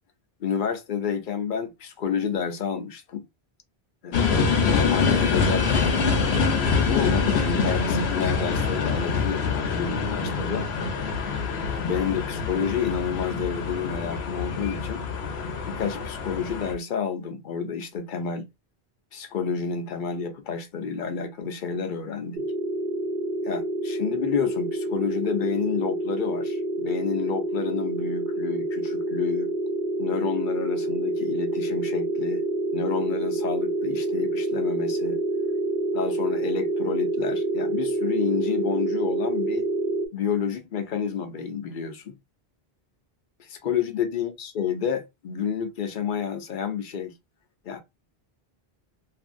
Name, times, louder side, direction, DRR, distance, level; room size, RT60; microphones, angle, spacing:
voice 1, 0.4-3.3 4.0-10.7 11.7-15.0 15.7-18.5 19.1-22.4 23.4-29.5 30.0-32.4 32.7-35.2 35.9-39.7 40.1-42.2 43.5-47.1 47.6-47.8, left 7 dB, 60° left, 0.7 m, -30 dB
sound 1, 4.1-16.7, left 5 dB, 85° left, 0.9 m, -25 dB
sound 2, 22.3-40.1, right 2 dB, 65° right, 0.9 m, -27 dB
2.7 x 2.5 x 2.5 m
omnidirectional pair, 1.0 m